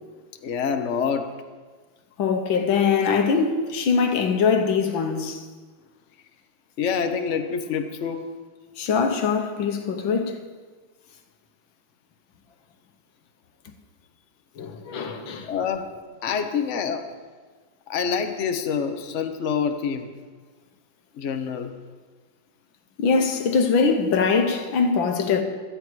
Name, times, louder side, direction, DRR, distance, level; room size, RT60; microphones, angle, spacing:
voice 1, 0.4-1.3 6.8-8.2 15.5-15.9 16.2-17.1 17.9-20.1 21.1-21.7, left 6 dB, 45° left, 1.1 m, -26 dB
voice 2, 2.2-5.5 8.8-10.4 14.6-15.5 23.0-25.4, left 5 dB, 80° left, 1.9 m, -22 dB
17.5 x 13.5 x 4.7 m
omnidirectional pair, 2.1 m